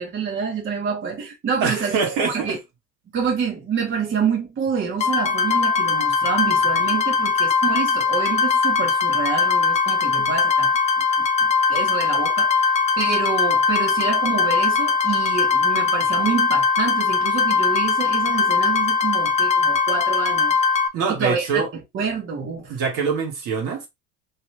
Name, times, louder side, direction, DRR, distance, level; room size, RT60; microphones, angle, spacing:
voice 1, 0.0-2.6 3.1-10.7 11.2-20.6 21.1-21.6 21.9-22.8, right 6 dB, 35° right, 1.3 m, -27 dB
voice 2, 1.6-2.6 20.9-21.7 22.7-23.9, right 5 dB, 60° right, 1.7 m, -24 dB
sound 1, 5.0-20.9, left 5 dB, 20° left, 0.4 m, -20 dB
2.9 x 2.9 x 3.3 m
supercardioid pair, 100°, 36 cm